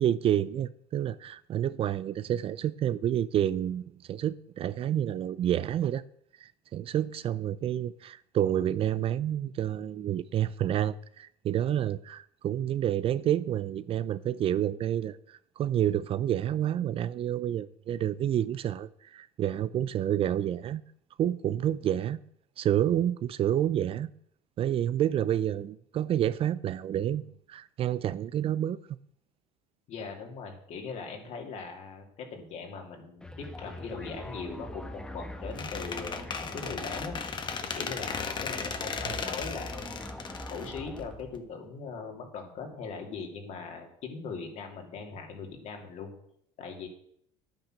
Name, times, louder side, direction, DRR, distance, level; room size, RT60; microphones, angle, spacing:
voice 1, 0.0-6.0 6.4-20.8 21.2-22.2 22.6-24.1 24.6-27.2 27.5-28.8 39.0-39.1, right 11 dB, 45° right, 0.5 m, -29 dB
voice 2, 29.9-37.2 37.7-46.1 46.6-46.9, left 5 dB, 55° left, 3.0 m, -40 dB
sound 1, 33.2-41.4, left 1 dB, 5° left, 1.2 m, -42 dB
Squeak, 35.6-41.4, left 5 dB, 35° left, 1.4 m, -36 dB
10.0 x 9.1 x 6.5 m
cardioid pair, 115°, 14 cm